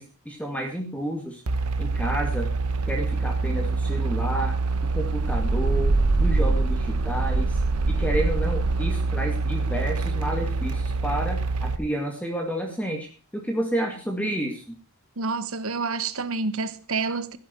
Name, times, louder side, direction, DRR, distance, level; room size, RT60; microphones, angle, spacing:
voice 1, 0.0-1.4 1.8-2.5 2.9-4.6 4.9-7.6 7.9-14.8, right 1 dB, 5° left, 2.3 m, -30 dB
sound 1, 1.5-11.8, right 3 dB, 85° right, 1.0 m, -24 dB
voice 2, 15.2-17.4, right 4 dB, 65° right, 1.2 m, -28 dB
14.5 x 11.5 x 4.6 m
head